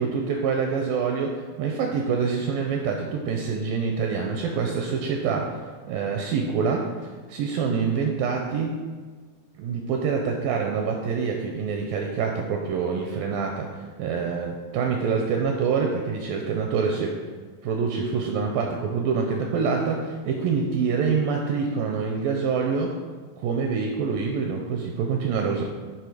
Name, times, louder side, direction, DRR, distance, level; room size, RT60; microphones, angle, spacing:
voice 1, 0.0-1.3 1.6-5.5 5.9-6.9 7.3-8.8 9.6-17.1 17.6-22.9 23.4-25.6, right 5 dB, 85° right, 2 dB, 2.0 m, -26 dB
9.7 x 3.8 x 4.9 m, 1.4 s
omnidirectional pair, 4.5 m